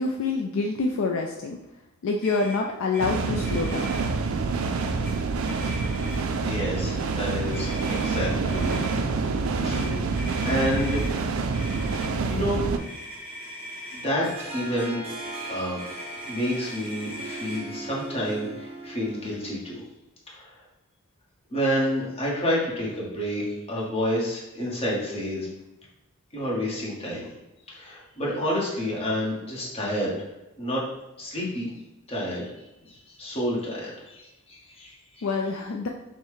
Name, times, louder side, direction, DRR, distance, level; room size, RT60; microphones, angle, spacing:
voice 1, 0.0-1.6 2.0-4.0 35.2-35.9, left 3 dB, 65° left, 1 dB, 0.4 m, -27 dB
Motor vehicle (road), 2.2-2.6 2.9-3.1 3.4-4.0 4.8-5.1 5.4-6.4 7.5-8.9 9.7-11.1 11.5-12.1 12.8-14.1 15.1-17.6, left 1 dB, 10° left, 1.3 m, -40 dB
sound 1, 3.0-12.8, right 4 dB, 70° right, 0.4 m, -27 dB
voice 2, 6.4-9.1 9.6-11.2 12.3-12.6 13.9-14.3 14.5-15.1 15.5-15.8 16.2-19.8 20.3-20.5 21.5-25.5 26.3-27.3 27.7-30.1 30.6-30.8 31.2-31.7 32.1-32.4 32.8-32.9 33.2-35.3, equal, 30° left, -5 dB, 1.1 m, -29 dB
Harp, 14.2-19.7, right 2 dB, 25° right, 0.6 m, -39 dB
5.5 x 2.1 x 3.1 m, 0.97 s
head